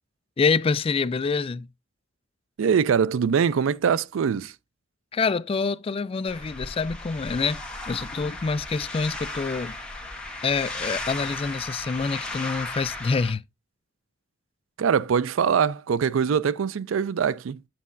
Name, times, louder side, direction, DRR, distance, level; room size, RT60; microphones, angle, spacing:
voice 1, 0.4-1.7 5.1-9.8 10.4-13.4, left 4 dB, 30° left, 0.3 m, -26 dB
voice 2, 2.6-4.5 14.8-17.6, right 7 dB, 90° right, 0.4 m, -23 dB
sound 1, 6.3-13.3, left 2 dB, 5° left, 1.5 m, -35 dB
8.2 x 7.6 x 2.5 m
head